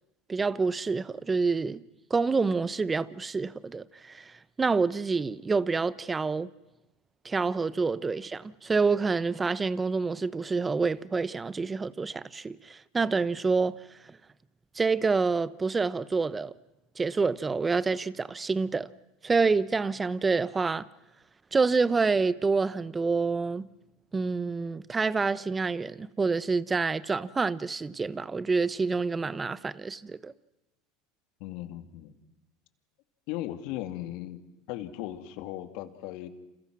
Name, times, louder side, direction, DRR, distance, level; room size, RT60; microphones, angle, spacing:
voice 1, 0.3-1.8 2.1-6.5 7.2-13.8 14.7-16.5 17.0-18.9 19.2-20.9 21.5-23.7 24.1-30.3, right 4 dB, 20° right, 1.0 m, -27 dB
voice 2, 31.4-32.1 33.3-34.4 34.7-36.3, left 14 dB, 65° left, 2.4 m, -37 dB
29.5 x 28.0 x 6.2 m
hypercardioid pair, 90°, 0 cm